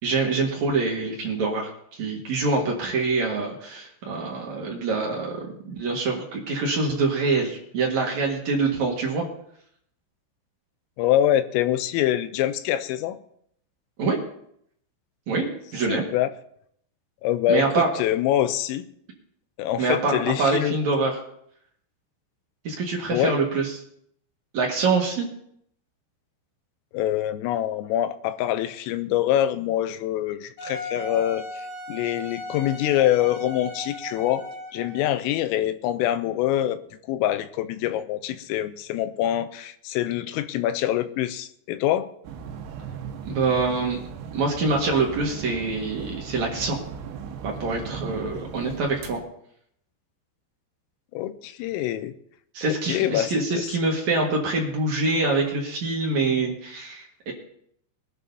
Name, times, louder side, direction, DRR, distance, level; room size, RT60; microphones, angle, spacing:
voice 1, 0.0-9.2 14.0-14.2 15.3-15.5 15.7-16.0 17.5-17.9 19.8-21.2 22.6-23.7 24.5-25.3 43.2-44.0 44.3-46.8 47.4-49.2 52.5-57.3, right 3 dB, 65° right, -1 dB, 1.8 m, -25 dB
voice 2, 11.0-13.2 15.9-16.3 17.2-18.9 19.6-20.7 23.1-23.3 26.9-34.5 34.7-36.8 37.1-42.1 51.1-52.1 52.7-53.7, left 12 dB, 85° left, 11 dB, 3.2 m, -25 dB
Wind instrument woodwind instrument, 30.6-35.1, equal, 60° left, 8.6 m, -37 dB
sound 1, 42.2-49.2, right 6 dB, 90° right, 4.0 m, -37 dB
21.5 x 11.5 x 2.8 m, 0.70 s
omnidirectional pair, 6.0 m